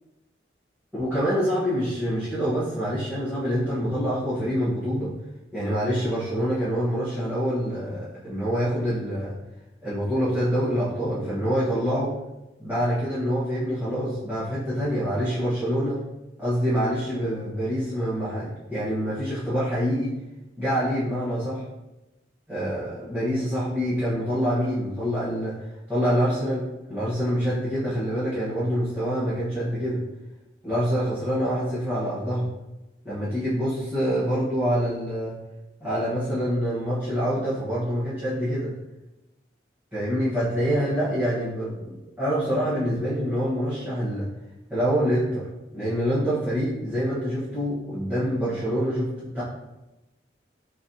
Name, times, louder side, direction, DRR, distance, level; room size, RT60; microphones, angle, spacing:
voice 1, 0.9-5.1 5.5-9.3 9.8-12.1 12.6-16.0 16.4-20.1 20.6-21.6 22.5-30.0 30.6-32.5 33.0-35.4 35.8-38.7 39.9-44.3 44.7-45.5 45.7-49.4, equal, 10° right, -13 dB, 1.3 m, -26 dB
4.5 x 4.0 x 2.8 m, 0.99 s
head